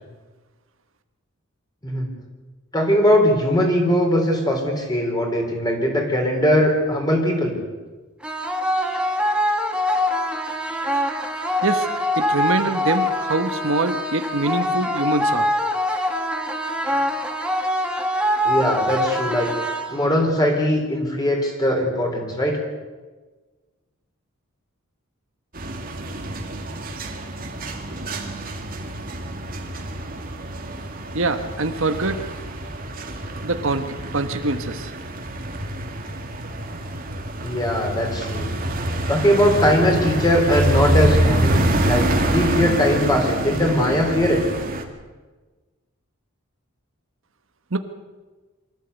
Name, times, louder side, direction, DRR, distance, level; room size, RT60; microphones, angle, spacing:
voice 1, 2.7-7.5 18.4-19.5 19.9-22.6 37.4-38.5 39.1-44.4, equal, 20° left, 2 dB, 4.0 m, -20 dB
sound 1, 8.2-20.2, equal, 5° right, 1.7 m, -24 dB
voice 2, 11.6-15.5 31.1-32.2 33.4-33.9 34.1-34.9 47.7-47.8, right 2 dB, 60° right, 8 dB, 1.2 m, -24 dB
sound 2, 25.5-44.8, right 1 dB, 40° right, 2.1 m, -26 dB
24.5 x 14.0 x 8.2 m, 1.3 s
head